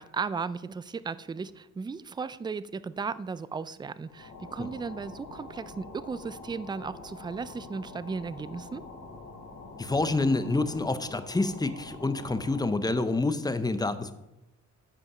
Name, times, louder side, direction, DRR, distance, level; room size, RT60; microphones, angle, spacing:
voice 1, 0.0-8.8, right 5 dB, 15° right, 16 dB, 0.4 m, -35 dB
sound 1, 4.0-12.9, left 3 dB, 65° left, 2.6 m, -45 dB
voice 2, 9.8-14.1, left 2 dB, 15° left, 11 dB, 0.8 m, -27 dB
14.0 x 5.2 x 4.9 m, 0.91 s
cardioid pair, 90°, 30 cm